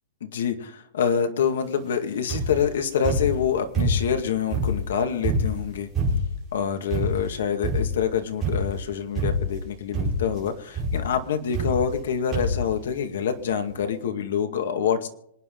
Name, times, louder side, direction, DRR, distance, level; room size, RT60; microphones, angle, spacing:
voice 1, 0.2-5.9 6.5-15.1, left 7 dB, 70° left, 7 dB, 2.1 m, -26 dB
sound 1, 2.3-2.7 3.0-4.2 4.5-6.4 6.9-7.3 7.6-8.1 8.4-8.8 9.2-9.6 9.9-10.4 10.7-11.1 11.5-12.1 12.3-12.7 13.4-13.5 13.7-13.8, right 1 dB, 10° right, 5.5 m, -26 dB
26.5 x 9.7 x 3.9 m, 0.76 s
supercardioid pair, 175°, 0 cm